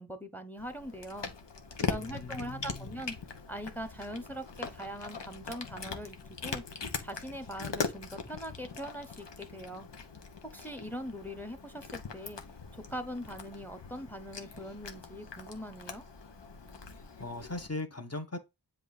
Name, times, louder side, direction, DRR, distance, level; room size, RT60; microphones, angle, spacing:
voice 1, 0.0-1.3 1.8-3.2 3.5-6.2 6.4-6.6 7.0-9.9 10.5-12.4 12.7-16.0, equal, 5° left, 1.0 m, -41 dB
Cat, 0.6-17.7, left 5 dB, 85° left, 1.1 m, -41 dB
voice 2, 1.9-3.0 17.2-18.4, left 2 dB, 35° left, 1.4 m, -39 dB
7.7 x 2.8 x 5.0 m
wide cardioid pair, 50°, 42 cm